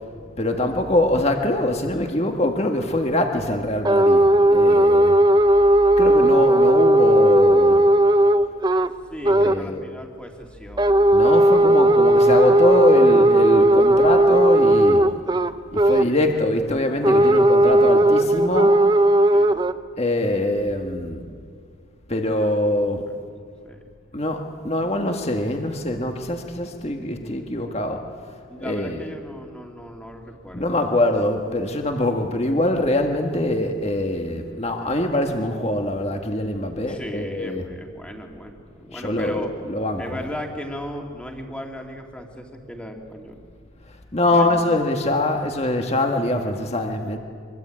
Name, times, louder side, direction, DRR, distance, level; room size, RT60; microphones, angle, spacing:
voice 1, 0.4-5.2 6.0-7.8 9.2-9.8 11.1-15.0 15.7-18.8 20.0-21.2 22.1-23.0 24.1-28.0 28.6-29.0 30.5-37.6 38.9-40.0 44.1-47.2, left 1 dB, 30° left, 4 dB, 1.6 m, -23 dB
sound 1, 3.8-8.9 9.2-9.6 10.8-16.1 17.0-19.7, right 1 dB, 20° right, 0.6 m, -16 dB
voice 2, 9.1-11.2 19.3-19.8 23.6-23.8 28.5-30.8 36.9-39.5 40.0-43.4 44.3-44.6, equal, 5° left, 2 dB, 2.4 m, -37 dB
24.5 x 23.0 x 8.8 m, 2.1 s
head